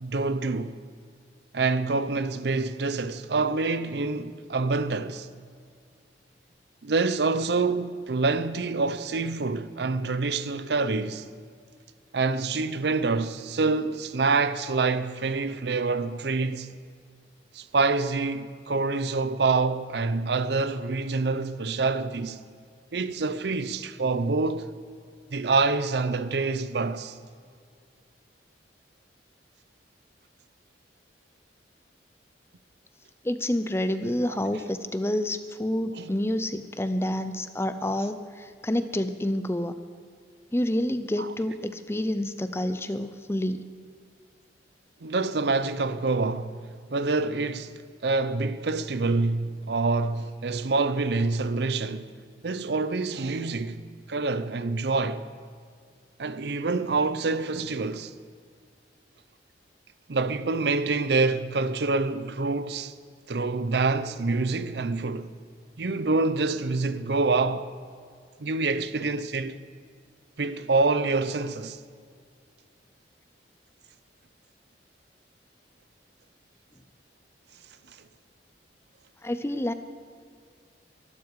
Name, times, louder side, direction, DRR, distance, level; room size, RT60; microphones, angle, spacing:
voice 1, 0.0-0.8 1.5-5.3 6.8-11.3 12.1-16.7 17.5-22.4 22.9-24.7 25.3-27.2 34.3-34.4 36.0-36.1 45.0-46.6 46.9-52.1 52.4-53.8 54.1-55.2 56.2-58.1 60.1-62.9 63.3-65.3 65.8-67.7 68.4-69.6 70.4-71.8, right 3 dB, 65° right, 0.6 m, -26 dB
voice 2, 33.2-39.8 40.5-43.6 79.2-79.7, left 1 dB, 15° left, 0.5 m, -28 dB
22.5 x 12.0 x 4.8 m
head